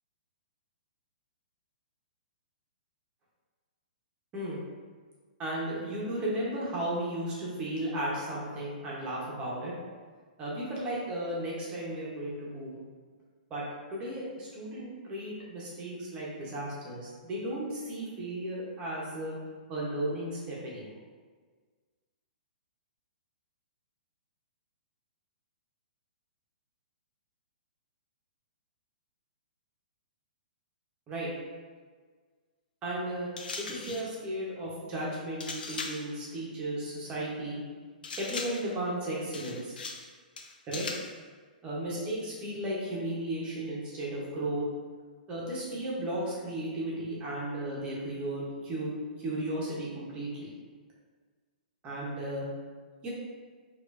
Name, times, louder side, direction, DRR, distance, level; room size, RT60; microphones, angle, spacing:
voice 1, 5.4-9.7 10.4-12.8 13.5-13.6 13.9-19.4 19.7-21.0 31.1-31.3 32.8-33.3 33.6-37.6 38.2-39.8 40.7-40.8 41.6-44.6 45.3-48.9 49.2-50.5 51.8-52.5 53.0-53.1, right 1 dB, 20° right, -5 dB, 0.8 m, -35 dB
sound 1, 33.4-34.1 35.4-36.1 38.0-38.7 39.3-40.1 40.4-41.1, left 4 dB, 85° left, 0.5 m, -39 dB
4.3 x 2.4 x 2.5 m, 1.5 s
hypercardioid pair, 150°, 5 cm